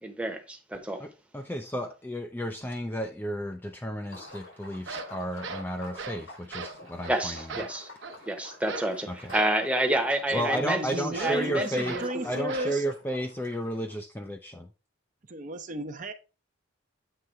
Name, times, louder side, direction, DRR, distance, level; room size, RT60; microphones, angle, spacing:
voice 1, 0.0-1.0 7.1-7.9 8.3-10.8 11.2-12.3, right 1 dB, 5° right, 0.9 m, -29 dB
voice 2, 1.0-7.4 9.1-9.3 10.3-12.0 12.2-14.7, equal, 10° left, 0.4 m, -33 dB
Liquid, 4.0-13.9, left 2 dB, 90° left, 3.2 m, -48 dB
sound 1, 4.3-4.4 4.7-6.2 6.5-6.8 7.0-7.2 7.5-8.2 8.7-8.9 9.3-9.6 11.1-11.5 11.8-12.1 12.5-12.8, right 3 dB, 70° right, 0.9 m, -38 dB
voice 3, 10.4-12.8 15.3-16.1, right 1 dB, 40° right, 0.6 m, -34 dB
7.8 x 3.4 x 4.4 m
head